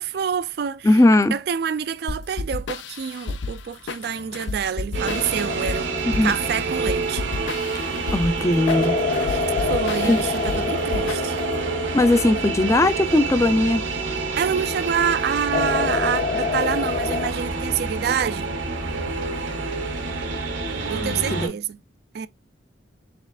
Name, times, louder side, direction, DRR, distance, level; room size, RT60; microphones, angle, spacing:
voice 1, 0.0-1.0 1.3-5.9 6.2-7.2 9.3-11.4 14.3-18.5 20.9-21.8 22.1-22.3, right 7 dB, 55° right, 0.3 m, -27 dB
voice 2, 0.8-1.3 6.0-6.3 8.1-9.0 10.0-10.2 11.9-13.9 21.0-21.5, left 1 dB, 15° left, 0.4 m, -19 dB
sound 1, 2.1-11.6, left 3 dB, 80° left, 0.4 m, -32 dB
sound 2, 4.9-21.5, right 3 dB, 85° right, 1.0 m, -28 dB
sound 3, 5.1-7.7 8.7-14.5 15.5-17.3, left 5 dB, 55° left, 0.8 m, -28 dB
4.3 x 3.4 x 2.3 m
head